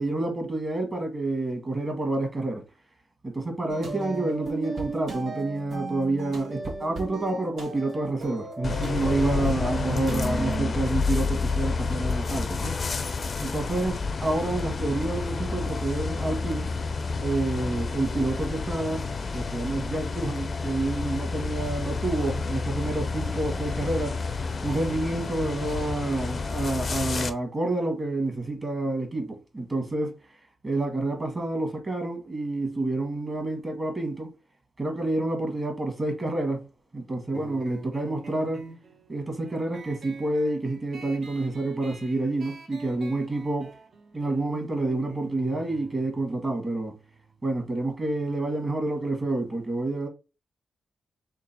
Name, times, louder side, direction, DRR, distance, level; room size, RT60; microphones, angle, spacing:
voice 1, 0.0-2.6 3.2-12.8 13.4-16.7 17.2-24.2 24.6-30.1 30.6-34.3 34.8-36.7 36.9-38.6 39.1-43.7 44.1-46.9 47.4-50.1, right 2 dB, 30° right, 1.5 m, -28 dB
sound 1, 3.7-10.7, right 3 dB, 70° right, 1.6 m, -35 dB
sound 2, 8.6-27.3, left 4 dB, 45° left, 0.5 m, -29 dB
sound 3, 37.3-48.5, right 3 dB, 55° right, 1.0 m, -46 dB
3.8 x 3.2 x 4.3 m
wide cardioid pair, 120°, 0 cm